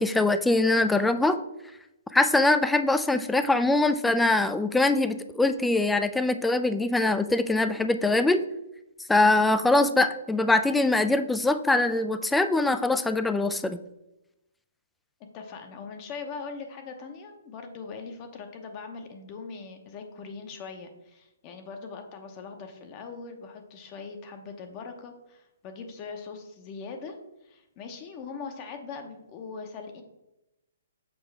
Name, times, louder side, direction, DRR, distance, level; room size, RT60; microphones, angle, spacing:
voice 1, 0.0-1.4 2.1-8.4 9.1-13.8, left 2 dB, 5° left, 10 dB, 0.3 m, -23 dB
voice 2, 15.3-30.0, left 4 dB, 30° left, 5 dB, 0.8 m, -41 dB
6.9 x 4.7 x 3.3 m, 0.92 s
hypercardioid pair, 150°, 0 cm